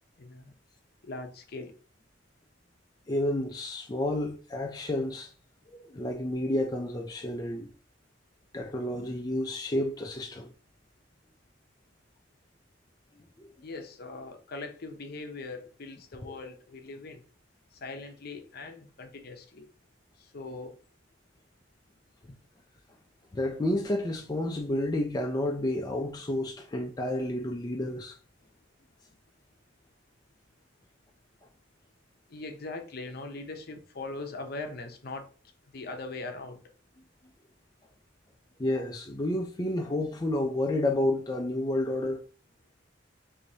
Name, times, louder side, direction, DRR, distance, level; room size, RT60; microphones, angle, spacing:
voice 1, 0.2-0.5 1.0-1.7 13.6-17.2 17.7-19.7 20.2-20.8 32.3-35.3 35.7-36.6, left 3 dB, 55° left, 0.7 m, -40 dB
voice 2, 3.1-5.3 5.8-7.7 8.5-10.5 13.4-13.5 16.2-16.4 23.3-28.2 38.6-42.2, left 1 dB, 20° left, 0.4 m, -30 dB
4.5 x 2.7 x 2.7 m
head